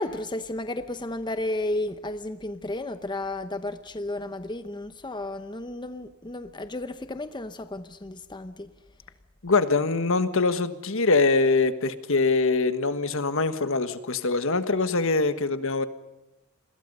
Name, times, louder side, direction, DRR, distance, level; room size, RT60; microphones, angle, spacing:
voice 1, 0.0-8.7, left 1 dB, 20° left, 10 dB, 0.8 m, -33 dB
voice 2, 9.4-15.8, left 3 dB, 60° left, 11 dB, 1.5 m, -23 dB
28.5 x 21.5 x 5.5 m, 1.0 s
head